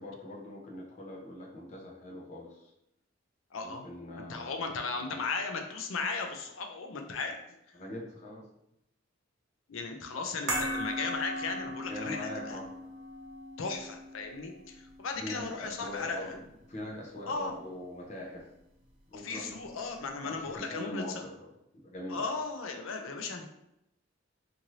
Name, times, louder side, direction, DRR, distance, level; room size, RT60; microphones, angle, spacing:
voice 1, 0.0-2.7 3.6-5.2 7.7-8.4 11.9-12.7 15.2-16.4 16.7-18.5 19.1-19.8 20.2-21.5 21.7-22.3, left 1 dB, 35° left, -3 dB, 0.7 m, -42 dB
voice 2, 3.5-3.8 4.1-7.4 9.7-12.6 13.6-16.4 17.3-17.6 19.1-21.3 22.1-23.4, left 4 dB, 85° left, 4 dB, 0.5 m, -36 dB
sound 1, 10.5-16.9 17.2-17.3, equal, 60° right, 0.7 m, -38 dB
2.7 x 2.6 x 3.0 m, 0.83 s
head